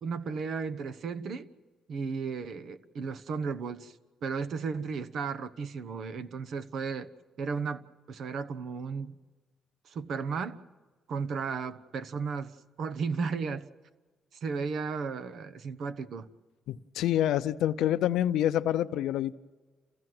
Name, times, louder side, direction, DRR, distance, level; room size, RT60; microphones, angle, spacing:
voice 1, 0.0-1.5 1.9-4.0 4.2-7.1 7.4-9.2 9.8-10.6 11.1-13.7 14.4-16.3, right 5 dB, 65° right, 1.1 m, -34 dB
voice 2, 16.7-19.4, left 12 dB, 85° left, 0.6 m, -27 dB
28.5 x 16.0 x 7.8 m
cardioid pair, 90°, 0 cm